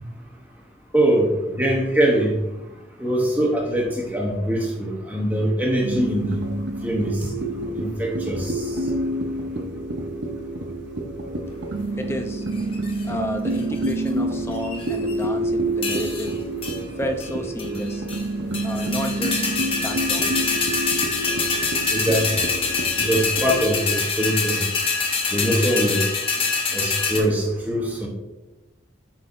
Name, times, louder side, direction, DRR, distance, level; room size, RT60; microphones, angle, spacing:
voice 1, 0.9-1.3 1.6-2.3 3.0-6.4 6.8-7.1 7.8-8.5 21.9-22.2 23.0-24.7 25.3-26.0 26.7-28.1, right 1 dB, 10° right, -2 dB, 0.9 m, -22 dB
sound 1, 5.8-23.7, right 1 dB, 70° right, 0.7 m, -28 dB
voice 2, 12.0-12.5 13.0-16.4 17.0-18.1 18.6-19.4 19.8-20.3, equal, 15° left, 5 dB, 0.6 m, -31 dB
sound 2, 12.6-13.0 13.6-14.1 14.6-15.2 15.8-16.3 16.6-16.8 17.2-17.3 17.6-18.2 18.5-27.2, left 4 dB, 30° left, 0.9 m, -25 dB
8.0 x 5.5 x 2.6 m, 1.0 s
head